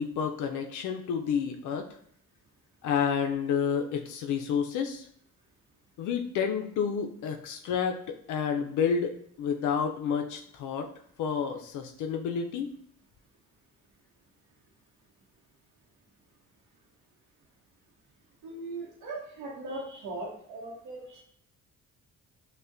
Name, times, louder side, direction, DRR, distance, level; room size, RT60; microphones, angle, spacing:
voice 1, 0.0-1.9 2.8-5.1 6.0-10.9 11.2-12.7, left 7 dB, 80° left, 4 dB, 0.5 m, -30 dB
voice 2, 18.4-21.2, right 2 dB, 90° right, -6 dB, 0.8 m, -39 dB
5.2 x 2.1 x 2.5 m, 0.64 s
cardioid pair, 90°, 30 cm